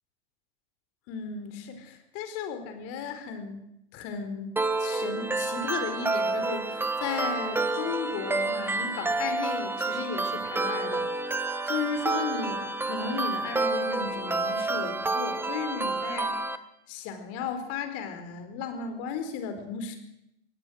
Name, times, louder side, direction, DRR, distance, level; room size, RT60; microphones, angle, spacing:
voice 1, 1.1-3.6 3.9-4.5 4.8-11.1 11.7-16.4 16.9-20.0, left 6 dB, 45° left, 7 dB, 4.7 m, -35 dB
sound 1, 4.6-16.6, right 3 dB, 5° right, 1.2 m, -29 dB
23.5 x 17.5 x 6.6 m, 0.81 s
hypercardioid pair, 105°, 34 cm